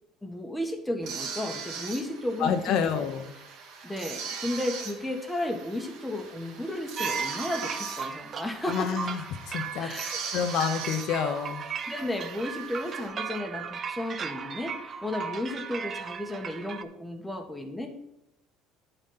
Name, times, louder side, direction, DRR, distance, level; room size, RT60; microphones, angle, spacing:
voice 1, 0.2-2.9 3.8-8.9 9.8-10.2 11.9-17.9, left 1 dB, 5° left, 2 dB, 1.3 m, -33 dB
sound 1, 1.0-13.1, right 6 dB, 65° right, 2.6 m, -40 dB
voice 2, 2.4-3.3 8.6-9.9 10.3-11.6, left 7 dB, 60° left, 6 dB, 1.0 m, -28 dB
sound 2, 7.0-16.8, right 6 dB, 35° right, 0.6 m, -36 dB
11.0 x 4.1 x 5.7 m, 0.87 s
cardioid pair, 135°, 0 cm